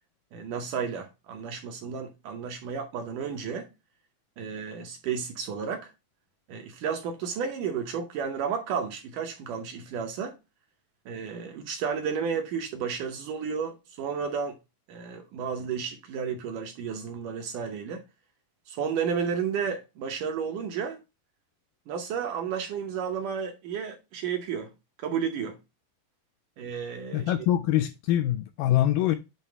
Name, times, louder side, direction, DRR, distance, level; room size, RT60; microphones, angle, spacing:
voice 1, 0.3-3.7 4.4-5.9 6.5-10.4 11.1-14.6 14.9-18.0 18.7-21.0 21.9-24.7 25.0-25.6 26.6-27.3, right 6 dB, 70° right, 2.1 m, -32 dB
voice 2, 27.1-29.2, left 12 dB, 80° left, 2.0 m, -24 dB
9.3 x 3.1 x 4.6 m
omnidirectional pair, 4.4 m